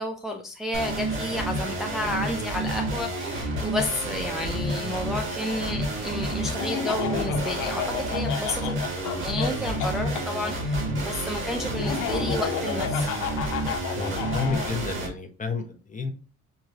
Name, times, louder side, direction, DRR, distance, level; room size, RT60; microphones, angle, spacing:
voice 1, 0.0-8.8 9.1-13.1, left 1 dB, ahead, 1 dB, 0.6 m, -31 dB
sound 1, 0.7-15.1, right 1 dB, 40° right, 2.0 m, -30 dB
Laughter, 6.6-10.3 11.8-14.7, left 8 dB, 90° left, 0.8 m, -32 dB
voice 2, 14.0-16.1, left 4 dB, 25° left, 4 dB, 1.0 m, -31 dB
6.2 x 2.9 x 2.7 m, 0.37 s
cardioid pair, 90°, 30 cm